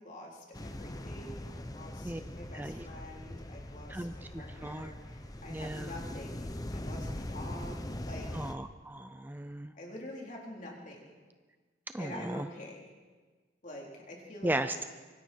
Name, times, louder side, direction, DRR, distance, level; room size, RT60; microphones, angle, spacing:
voice 1, 0.0-8.3 9.7-11.2 12.0-12.8 13.6-14.9, left 1 dB, 45° left, -2 dB, 4.1 m, -46 dB
sound 1, 0.5-8.5, left 1 dB, 20° left, 0.9 m, -41 dB
voice 2, 2.5-2.9 3.9-4.9 5.5-5.9 8.3-9.7 11.9-12.5 14.4-14.8, right 1 dB, 10° right, 9 dB, 0.5 m, -36 dB
25.5 x 23.5 x 4.7 m, 1.4 s
head